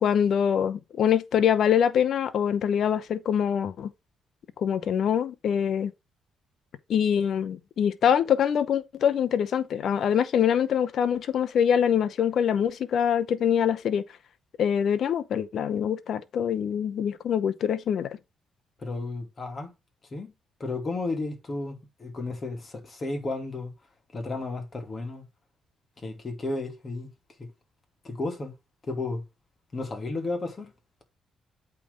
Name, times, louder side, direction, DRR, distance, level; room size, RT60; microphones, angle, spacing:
voice 1, 0.0-3.9 4.6-5.9 6.9-14.0 14.6-18.2, left 8 dB, 65° left, 0.8 m, -24 dB
voice 2, 18.8-19.7 20.1-20.3 20.6-23.7 24.1-25.2 26.0-27.1 27.4-27.5 28.0-28.5 28.9-29.2 29.7-30.7, left 3 dB, 35° left, 2.6 m, -33 dB
8.4 x 3.5 x 5.2 m
cardioid pair, 90°, 0 cm